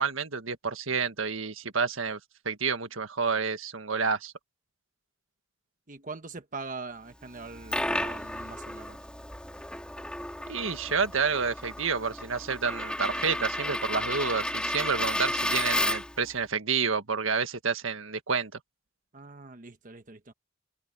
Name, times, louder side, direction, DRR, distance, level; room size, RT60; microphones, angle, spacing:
voice 1, 0.0-2.2 2.5-4.3 10.5-18.6, right 5 dB, 80° right, 1.6 m, -29 dB
voice 2, 5.9-9.0 19.1-20.3, right 3 dB, 40° right, 1.2 m, -42 dB
Coin (dropping), 7.4-16.2, left 1 dB, 5° left, 2.5 m, -32 dB
head